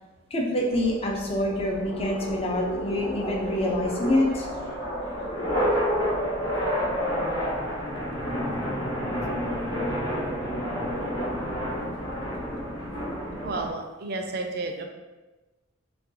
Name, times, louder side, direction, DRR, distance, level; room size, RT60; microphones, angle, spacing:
voice 1, 0.3-4.5, left 1 dB, 30° left, -1 dB, 0.5 m, -26 dB
sound 1, 0.7-13.7, equal, 75° left, 1.4 m, -30 dB
voice 2, 13.3-14.8, right 3 dB, 50° right, 4 dB, 0.4 m, -32 dB
5.4 x 2.3 x 2.6 m, 1.2 s
head